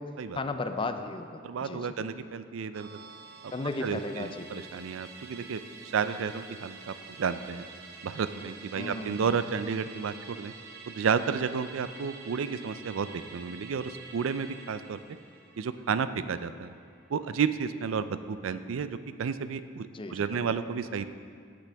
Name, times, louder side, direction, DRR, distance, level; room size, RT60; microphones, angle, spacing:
voice 1, 0.3-1.9 3.5-4.6 8.7-9.2 19.9-20.3, left 3 dB, 25° left, 8 dB, 0.5 m, -35 dB
voice 2, 1.4-3.0 3.8-5.6 5.9-7.7 8.0-10.5 10.9-15.0 15.6-16.7 17.1-21.1, right 6 dB, 80° right, 12 dB, 0.4 m, -32 dB
Musical instrument, 2.7-17.4 17.7-17.8, right 4 dB, 55° right, 1.0 m, -48 dB
16.0 x 6.0 x 3.4 m, 2.1 s
head